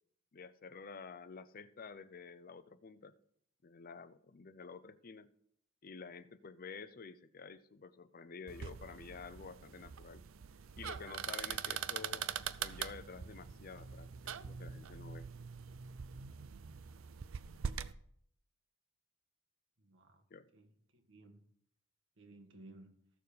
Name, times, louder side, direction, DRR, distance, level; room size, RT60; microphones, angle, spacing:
voice 1, 0.3-3.1 3.6-5.3 5.8-10.2 10.7-15.3 20.3-20.5, left 5 dB, 45° left, 0.6 m, -50 dB
sound 1, 8.5-17.9, right 7 dB, 80° right, 0.6 m, -43 dB
voice 2, 19.8-20.2 20.5-21.4 22.2-22.9, right 2 dB, 65° right, 1.7 m, -58 dB
14.5 x 6.9 x 5.1 m
head